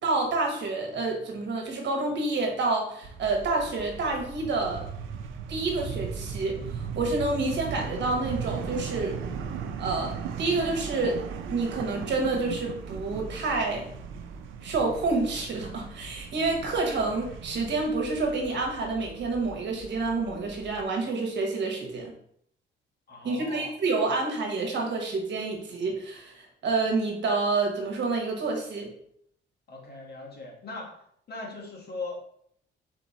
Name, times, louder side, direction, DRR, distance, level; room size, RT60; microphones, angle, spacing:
voice 1, 0.0-4.9 5.5-9.2 9.8-10.1 10.4-11.2 11.5-13.9 14.6-22.1 23.2-26.3 26.6-28.9, right 3 dB, 65° right, 1 dB, 1.2 m, -28 dB
sound 1, 3.0-20.8, right 6 dB, 90° right, 0.5 m, -38 dB
voice 2, 23.1-23.7 29.7-30.9 31.3-32.2, left 3 dB, 55° left, -1 dB, 1.5 m, -39 dB
4.3 x 2.9 x 4.1 m, 0.68 s
cardioid pair, 90°, 20 cm